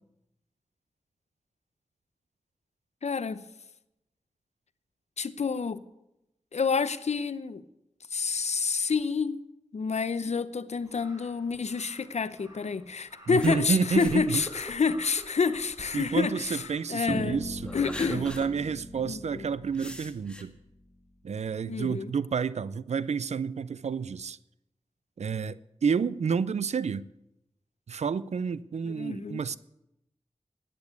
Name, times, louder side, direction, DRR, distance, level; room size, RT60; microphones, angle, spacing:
voice 1, 3.0-3.4 5.2-5.8 6.5-7.6 8.1-9.4 9.7-17.4 17.7-18.2 19.0-19.4 21.7-22.1 28.8-29.4, left 5 dB, 70° left, 0.7 m, -29 dB
Crow, 10.8-18.2, equal, 30° right, 5.1 m, -54 dB
voice 2, 13.3-14.4 15.9-17.7 18.1-20.5 21.2-24.4 25.2-27.0 27.9-29.6, right 6 dB, 70° right, 0.4 m, -29 dB
sound 1, 13.4-16.7 17.2-18.5 18.9-19.0 19.7-20.4, left 1 dB, 10° left, 1.7 m, -42 dB
Bass guitar, 17.1-21.0, equal, 5° right, 2.0 m, -39 dB
10.5 x 8.5 x 8.3 m
cardioid pair, 50°, 12 cm